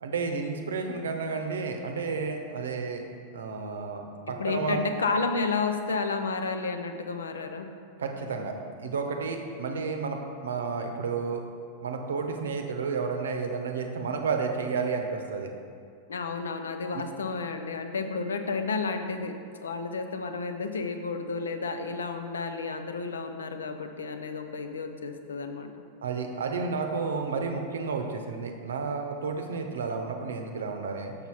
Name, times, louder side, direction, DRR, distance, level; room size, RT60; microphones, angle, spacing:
voice 1, 0.0-3.0 3.3-4.0 4.3-4.8 8.0-8.5 8.8-11.4 11.8-15.5 16.9-17.0 26.0-31.2, right 4 dB, 65° right, 4 dB, 0.7 m, -31 dB
voice 2, 4.4-7.7 16.1-19.4 19.6-25.7, left 4 dB, 70° left, 7 dB, 0.5 m, -31 dB
6.8 x 5.4 x 4.4 m, 2.2 s
figure-of-eight pair, 90°, 0 cm